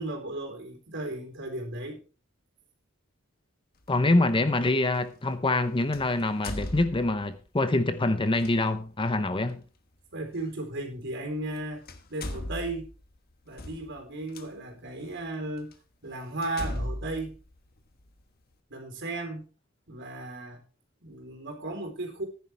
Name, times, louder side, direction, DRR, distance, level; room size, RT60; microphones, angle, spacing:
voice 1, 0.0-2.0 10.1-11.8 12.1-12.9 13.5-15.7 16.0-17.4 18.7-19.5 19.9-20.6 21.0-22.3, right 2 dB, 60° right, 4.0 m, -35 dB
sound 1, 3.8-4.0 5.9-7.4 8.3-8.5 10.4-10.5 11.4-11.6 11.9-14.5 15.1-15.2 15.7-15.8 16.4-18.2, left 1 dB, 50° left, 1.3 m, -37 dB
voice 2, 3.9-9.6, left 2 dB, 25° left, 0.8 m, -25 dB
14.0 x 10.5 x 3.4 m
head